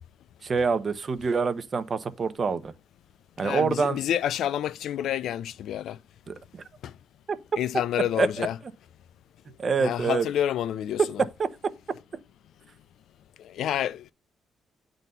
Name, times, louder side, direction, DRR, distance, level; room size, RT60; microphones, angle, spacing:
voice 1, 0.4-2.7 3.4-4.0 6.3-6.6 7.3-7.4 8.2-8.5 9.6-10.2, right 5 dB, 40° right, 0.8 m, -26 dB
voice 2, 3.4-6.0 6.8-6.9 7.6-8.6 9.8-11.2 13.4-14.1, left 11 dB, 75° left, 0.4 m, -29 dB
9.0 x 3.9 x 5.5 m
cardioid pair, 90°, 0 cm